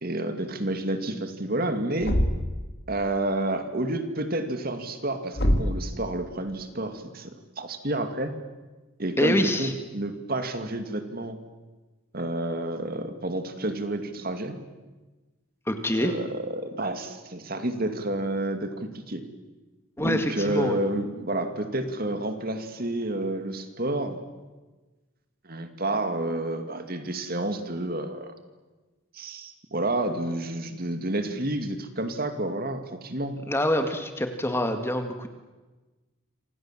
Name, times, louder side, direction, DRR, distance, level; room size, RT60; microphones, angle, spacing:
voice 1, 0.0-2.2 2.9-8.3 9.0-11.4 12.1-14.6 15.9-19.2 20.0-24.2 25.4-28.3 29.1-33.4, right 1 dB, 45° right, 8 dB, 2.5 m, -30 dB
Thump thud, 2.0-2.7 5.4-5.9, equal, 50° left, 2.6 m, -24 dB
voice 2, 9.2-9.7 15.7-16.1 20.0-20.8 33.5-35.3, left 1 dB, 10° left, 7 dB, 1.9 m, -25 dB
27.5 x 27.0 x 7.6 m, 1.2 s
head